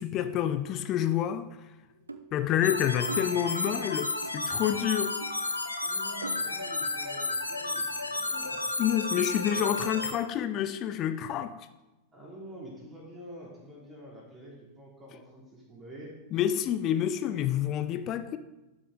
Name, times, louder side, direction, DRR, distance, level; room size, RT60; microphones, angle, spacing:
voice 1, 0.0-1.5 2.3-5.2 8.8-11.5 16.3-18.4, left 10 dB, 35° left, 0.5 m, -28 dB
sound 1, 1.9-3.8 4.2-4.9 5.2-5.4 5.8-5.9 6.2-6.4 6.8-6.9, right 3 dB, 80° right, 0.5 m, -42 dB
sound 2, 2.6-10.1, left 3 dB, 80° left, 0.9 m, -32 dB
voice 2, 5.8-8.6 9.8-10.0 12.1-16.2, right 1 dB, 20° right, 3.3 m, -47 dB
12.0 x 6.3 x 3.7 m
figure-of-eight pair, 90°, 0 cm